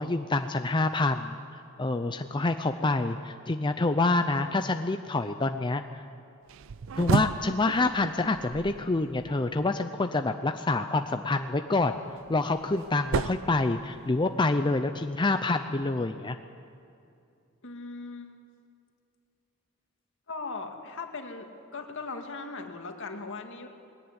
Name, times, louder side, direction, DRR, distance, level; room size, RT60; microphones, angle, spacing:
voice 1, 0.0-1.4 1.8-6.0 7.0-11.9 12.3-16.4, left 2 dB, 20° left, 7 dB, 0.6 m, -27 dB
sound 1, 6.5-9.6 11.9-14.4, right 5 dB, 65° right, 0.4 m, -33 dB
voice 2, 17.6-18.4 20.3-23.7, left 3 dB, 65° left, 4 dB, 2.1 m, -39 dB
20.0 x 17.5 x 9.7 m, 2.5 s
head